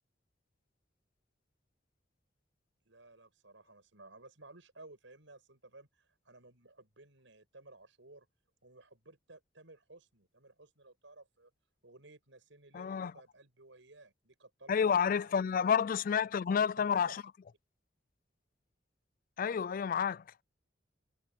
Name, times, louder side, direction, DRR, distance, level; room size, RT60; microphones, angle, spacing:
voice 1, 2.8-8.3 8.6-11.5 11.8-16.2 16.8-17.1, right 2 dB, 85° right, 6.2 m, -57 dB
voice 2, 12.7-13.1 14.7-17.2 19.4-20.2, left 7 dB, 45° left, 0.3 m, -30 dB
head